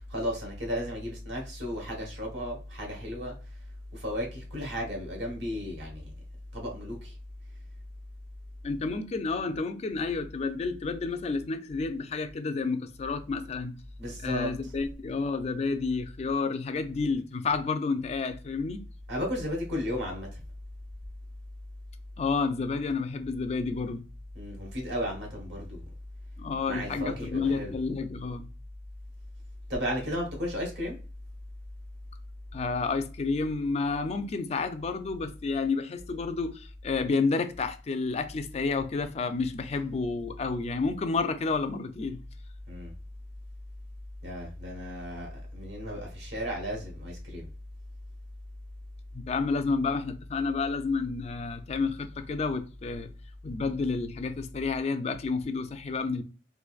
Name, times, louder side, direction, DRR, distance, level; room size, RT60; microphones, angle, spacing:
voice 1, 0.0-3.3 3.9-6.0 6.5-7.1 14.0-14.7 19.1-20.4 24.3-25.9 26.7-27.7 29.7-31.0 42.7-42.9 44.2-47.5, equal, 65° right, 1.3 m, -34 dB
voice 2, 8.6-13.7 14.2-18.8 22.2-24.0 26.4-28.5 32.5-42.2 49.1-53.1 53.4-56.2, left 4 dB, 35° left, 0.3 m, -30 dB
3.8 x 2.5 x 2.3 m
head